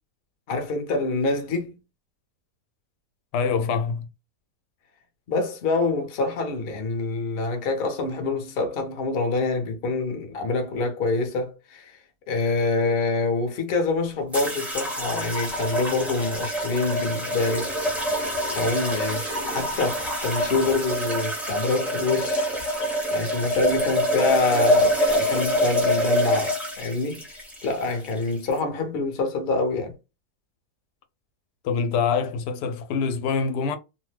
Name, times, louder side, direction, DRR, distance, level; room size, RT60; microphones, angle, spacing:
voice 1, 0.5-1.7 5.3-12.0 12.3-17.7 18.5-29.9, left 3 dB, 50° left, 0.7 m, -26 dB
voice 2, 3.3-4.1 31.6-33.8, left 5 dB, 85° left, 1.2 m, -25 dB
sound 1, 14.3-28.6, equal, ahead, 0.4 m, -26 dB
2.8 x 2.1 x 3.2 m
omnidirectional pair, 1.7 m